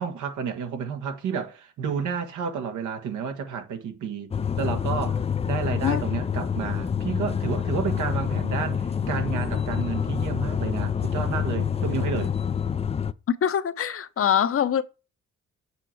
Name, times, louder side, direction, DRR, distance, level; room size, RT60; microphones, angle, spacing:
voice 1, 0.0-12.3, right 6 dB, 80° right, 1.6 m, -31 dB
sound 1, 4.3-13.1, left 7 dB, 20° left, 0.4 m, -27 dB
voice 2, 13.3-14.8, left 8 dB, 45° left, 0.8 m, -23 dB
7.9 x 4.4 x 4.6 m
cardioid pair, 90°, 30 cm